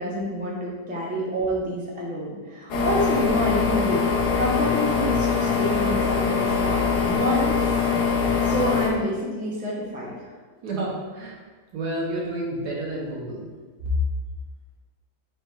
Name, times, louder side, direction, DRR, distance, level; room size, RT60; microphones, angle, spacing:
voice 1, 0.0-7.7 8.0-10.3, equal, 15° right, -4 dB, 0.3 m, -28 dB
sound 1, 2.7-8.9, left 5 dB, 80° left, 1.3 m, -23 dB
voice 2, 10.6-11.4 11.7-13.5 13.8-13.9, right 1 dB, 85° right, -2 dB, 1.5 m, -29 dB
5.0 x 2.2 x 4.5 m, 1.4 s
omnidirectional pair, 1.7 m